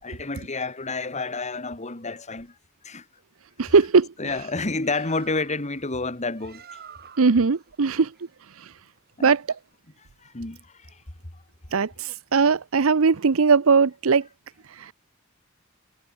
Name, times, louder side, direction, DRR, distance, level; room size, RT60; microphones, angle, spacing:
voice 1, 0.0-2.6 2.8-3.1 4.2-6.6 9.2-9.3 10.2-11.0, left 3 dB, 35° left, 2.1 m, -30 dB
voice 2, 3.6-4.1 7.2-8.1 8.6-8.7 9.2-9.4 11.7-14.3 14.8-14.9, right 5 dB, 85° right, 0.7 m, -19 dB
Bird, 4.8-9.8, right 7 dB, 50° right, 4.4 m, -50 dB
head